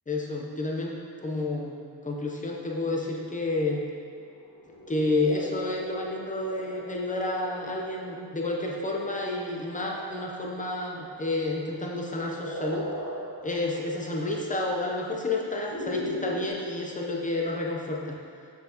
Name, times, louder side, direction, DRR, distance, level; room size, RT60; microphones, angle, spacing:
voice 1, 0.1-1.8 2.0-3.8 4.9-12.9 13.4-18.2, left 2 dB, 20° left, -1 dB, 0.7 m, -30 dB
sound 1, 4.5-16.5, left 1 dB, 75° left, 1.3 m, -40 dB
7.6 x 6.1 x 2.9 m, 2.3 s
wide cardioid pair, 155°, 44 cm